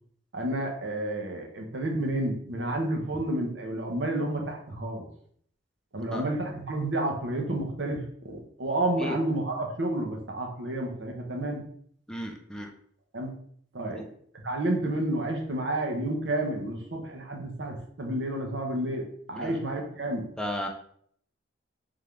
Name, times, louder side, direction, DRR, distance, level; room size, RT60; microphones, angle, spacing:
voice 1, 0.3-5.1 5.9-11.7 13.1-13.3 13.7-14.0 14.3-20.3, right 1 dB, 75° right, 1 dB, 0.9 m, -30 dB
voice 2, 12.1-12.7 13.9-14.1 19.4-19.6 20.4-20.7, left 1 dB, 5° left, 2 dB, 0.4 m, -34 dB
3.6 x 3.5 x 3.3 m, 0.63 s
head